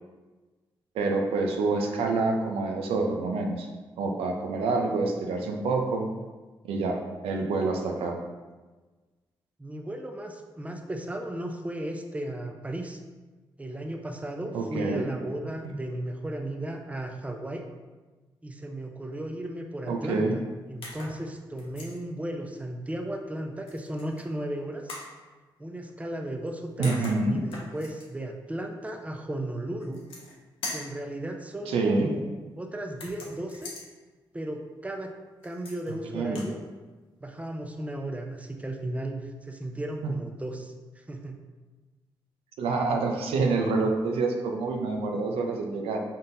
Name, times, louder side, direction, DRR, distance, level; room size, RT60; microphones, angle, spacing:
voice 1, 0.9-3.7 4.0-6.1 6.6-7.0 7.2-8.1 14.5-15.0 15.6-15.7 19.9-20.3 26.8-27.4 31.7-32.1 36.1-36.4 40.0-40.1 42.6-46.0, right 3 dB, 85° right, 2 dB, 0.5 m, -27 dB
voice 2, 9.6-13.0 13.6-17.6 18.4-20.4 20.7-25.0 25.6-30.0 30.7-32.3 32.6-33.7 34.3-35.1 35.4-36.6 37.2-41.4, right 1 dB, 15° right, 3 dB, 0.6 m, -35 dB
sound 1, 20.8-21.2 21.6-22.0 23.7-24.2 24.9-25.1 26.5-26.6 26.8-28.1 29.8-30.4 30.6-31.0 32.9-33.9 35.4-35.9 36.2-36.5, left 2 dB, 80° left, 0.8 m, -40 dB
4.1 x 3.6 x 2.6 m, 1.3 s
supercardioid pair, 50°, 10 cm